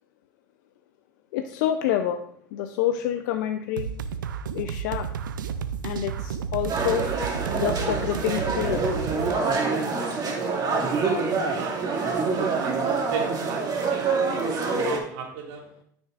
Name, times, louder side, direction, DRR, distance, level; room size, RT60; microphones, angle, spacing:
voice 1, 1.3-2.2 2.5-3.9 4.6-5.1 5.8-7.1 7.5-8.8, left 11 dB, 70° left, 8 dB, 0.5 m, -27 dB
sound 1, 3.8-9.3, right 7 dB, 90° right, 0.5 m, -32 dB
sound 2, 6.7-15.0, right 4 dB, 40° right, 2.1 m, -26 dB
voice 2, 10.0-11.0 11.3-15.6, right 5 dB, 70° right, 1 dB, 2.2 m, -38 dB
13.0 x 6.2 x 2.5 m, 0.67 s
hypercardioid pair, 85°, 10 cm